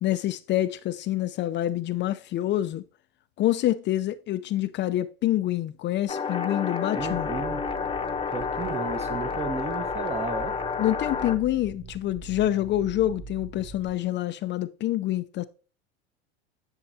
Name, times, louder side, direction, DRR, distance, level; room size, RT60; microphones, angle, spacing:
voice 1, 0.0-2.8 3.4-7.3 10.8-15.4, left 13 dB, 40° left, 0.5 m, -26 dB
sound 1, 6.1-11.4, left 5 dB, 20° left, 0.9 m, -30 dB
voice 2, 6.9-7.6 8.3-10.6, right 4 dB, 20° right, 0.9 m, -33 dB
sound 2, 7.0-13.9, right 4 dB, 40° right, 2.0 m, -42 dB
10.5 x 6.3 x 2.7 m
hypercardioid pair, 85°, 30 cm